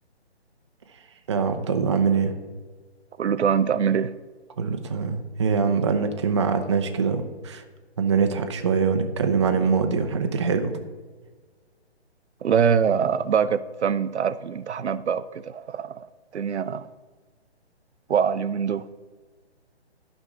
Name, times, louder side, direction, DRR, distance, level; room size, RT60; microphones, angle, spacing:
voice 1, 1.3-2.3 4.6-7.6 8.0-10.7, right 5 dB, 25° right, 6 dB, 0.5 m, -23 dB
voice 2, 3.2-4.1 12.4-16.1 16.3-16.9 18.1-18.8, right 7 dB, 80° right, 14 dB, 0.6 m, -23 dB
11.5 x 5.2 x 4.8 m, 1.4 s
hypercardioid pair, 155°, 33 cm